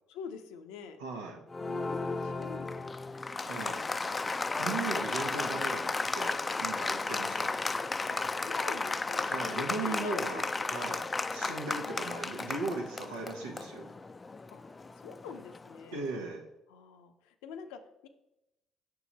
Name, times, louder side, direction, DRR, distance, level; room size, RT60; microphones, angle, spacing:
voice 1, 0.1-1.0 1.6-2.9 4.5-5.0 8.2-10.7 11.8-12.4 14.5-14.6 15.0-16.0 16.7-18.1, left 6 dB, 80° left, 8 dB, 0.6 m, -45 dB
voice 2, 1.0-1.4 3.4-3.9 4.6-7.6 9.3-13.9 15.9-16.5, right 3 dB, 90° right, 2 dB, 0.9 m, -38 dB
Applause, 1.5-15.9, left 3 dB, 30° left, 0.3 m, -34 dB
6.3 x 4.8 x 4.1 m, 0.91 s
hypercardioid pair, 55°, 0 cm